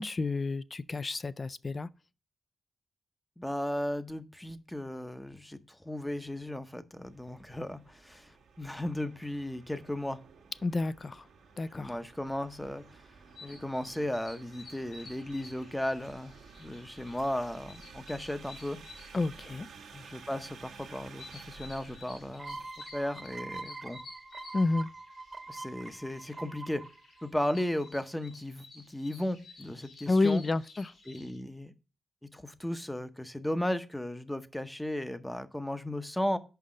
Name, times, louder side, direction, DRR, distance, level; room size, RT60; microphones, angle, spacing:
voice 1, 0.0-1.9 10.6-11.3 11.6-11.9 19.1-19.7 24.5-24.9 30.1-30.9, left 3 dB, 40° left, 0.3 m, -30 dB
voice 2, 3.4-10.2 11.7-13.0 13.4-18.8 19.9-22.6 22.9-24.0 25.5-26.8 27.2-30.4 31.1-31.7 32.3-36.4, left 1 dB, 10° left, 0.7 m, -35 dB
sound 1, 7.0-22.7, right 5 dB, 90° right, 1.3 m, -53 dB
sound 2, 12.7-31.4, left 3 dB, 70° left, 3.2 m, -54 dB
sound 3, 22.4-27.9, right 3 dB, 40° right, 1.0 m, -44 dB
5.7 x 5.3 x 5.0 m
cardioid pair, 65°, 0 cm